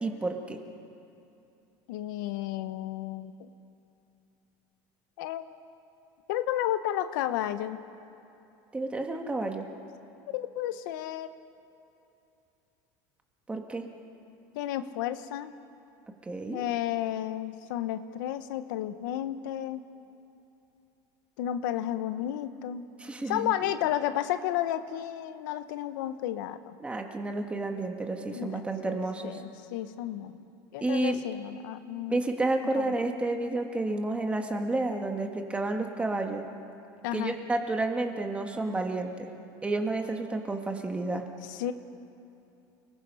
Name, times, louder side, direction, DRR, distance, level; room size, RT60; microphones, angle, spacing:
voice 1, 0.0-0.6 8.7-9.7 13.5-13.8 16.2-16.6 23.0-23.7 26.8-29.4 30.8-31.2 32.1-36.4 37.1-39.3 39.6-41.2, right 2 dB, 10° right, 4 dB, 1.7 m, -30 dB
voice 2, 1.9-3.5 5.2-5.4 6.3-7.8 10.3-11.3 14.5-15.5 16.5-19.8 21.4-22.8 23.3-26.7 28.3-29.0 29.2-30.4 30.7-32.2 32.8-32.9 37.0-37.3 41.5-41.7, left 12 dB, 85° left, 10 dB, 1.1 m, -32 dB
29.0 x 19.5 x 5.6 m, 2.8 s
cardioid pair, 145°, 10 cm